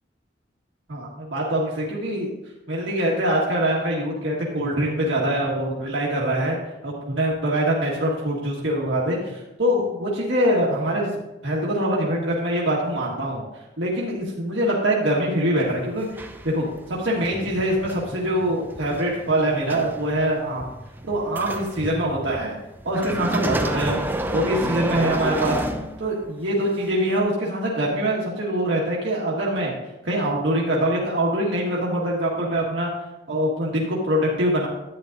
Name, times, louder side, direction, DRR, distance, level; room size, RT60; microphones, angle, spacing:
voice 1, 0.9-2.3 2.7-6.6 6.8-11.1 11.4-13.4 13.8-16.1 16.4-20.7 21.0-22.6 22.9-24.0 24.3-25.6 26.0-29.8 30.0-32.9 33.3-34.7, right 1 dB, 90° right, -4 dB, 1.6 m, -24 dB
sound 1, 15.6-26.4 27.1-27.2, right 1 dB, 10° right, 0.5 m, -30 dB
11.5 x 9.1 x 2.6 m, 0.97 s
head